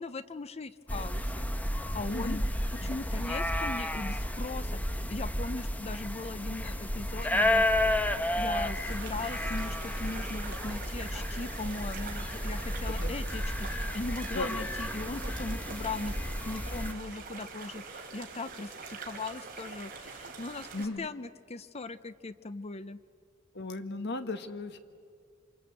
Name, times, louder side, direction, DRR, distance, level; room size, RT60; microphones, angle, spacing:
voice 1, 0.0-1.5 1.9-2.4 2.7-7.7 8.3-16.1 16.4-23.0, left 3 dB, 30° left, 14 dB, 0.6 m, -39 dB
sound 1, 0.9-16.9, left 1 dB, 10° left, 1.0 m, -32 dB
voice 2, 2.1-2.4 2.8-2.9 12.8-13.1 14.3-14.5 20.7-21.1 23.5-24.8, left 2 dB, 55° left, 8 dB, 1.6 m, -36 dB
sound 2, 8.8-20.8, right 4 dB, 45° right, 3.8 m, -45 dB
27.5 x 26.0 x 8.2 m, 2.2 s
head